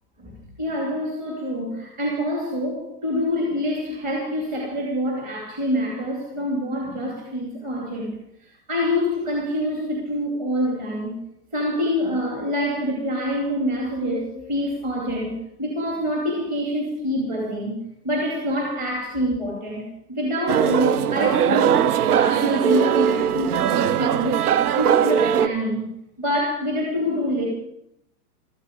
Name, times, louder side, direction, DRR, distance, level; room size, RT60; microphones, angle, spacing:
voice 1, 0.2-11.2 11.5-17.8 18.0-24.4 24.8-25.9 26.2-27.5, equal, 15° right, -2 dB, 2.5 m, -26 dB
sound 1, 20.5-25.5, right 9 dB, 65° right, 0.7 m, -20 dB
15.5 x 13.5 x 5.2 m, 0.75 s
hypercardioid pair, 170°, 49 cm